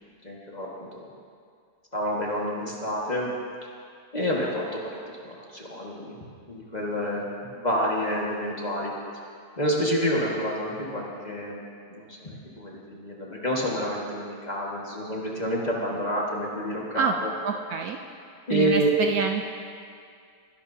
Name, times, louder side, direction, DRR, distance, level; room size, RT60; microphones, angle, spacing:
voice 1, 0.2-0.9 1.9-3.3 4.1-6.2 6.5-8.9 9.6-11.6 11.9-17.3 18.5-18.9, equal, 25° left, -3 dB, 1.7 m, -29 dB
voice 2, 17.4-18.0 18.5-19.5, right 6 dB, 70° right, 3 dB, 1.0 m, -26 dB
21.0 x 11.5 x 2.7 m, 2.2 s
omnidirectional pair, 1.8 m